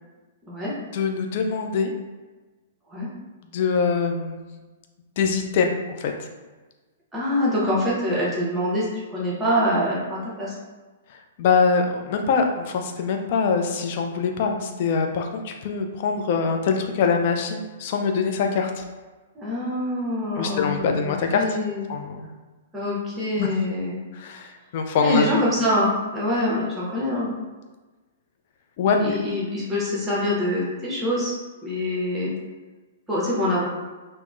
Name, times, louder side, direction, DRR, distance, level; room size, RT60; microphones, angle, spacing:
voice 1, 0.9-1.9 3.5-4.5 5.2-6.3 11.4-18.8 20.4-21.4 21.9-22.3 23.4-23.5 24.1-25.2 28.8-29.2, left 5 dB, 50° left, 4 dB, 0.4 m, -23 dB
voice 2, 7.1-8.9 9.1-10.5 19.3-21.8 22.7-24.0 25.0-27.3 28.9-31.3 31.6-32.3 33.1-33.7, left 1 dB, 15° right, -6 dB, 0.9 m, -25 dB
3.4 x 2.1 x 2.4 m, 1.2 s
figure-of-eight pair, 110°, 0 cm